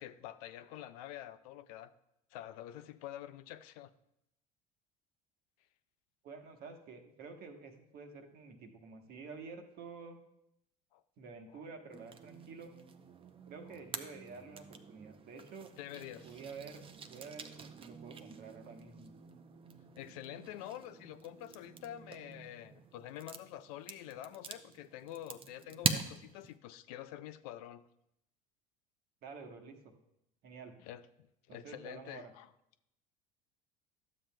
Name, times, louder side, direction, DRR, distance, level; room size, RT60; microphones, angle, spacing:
voice 1, 0.0-1.9 2.3-3.9 10.9-11.0 15.8-16.3 20.0-27.9 30.8-31.0 31.5-32.5, left 12 dB, 75° left, 12 dB, 0.4 m, -47 dB
voice 2, 6.2-10.2 11.2-12.7 13.5-15.7 16.2-19.1 29.2-29.9 30.4-30.7 31.5-32.3, right 4 dB, 55° right, 4 dB, 1.1 m, -49 dB
sound 1, 11.9-26.6, right 5 dB, 30° right, 0.6 m, -44 dB
12.0 x 7.3 x 2.2 m, 0.80 s
hypercardioid pair, 75°, 19 cm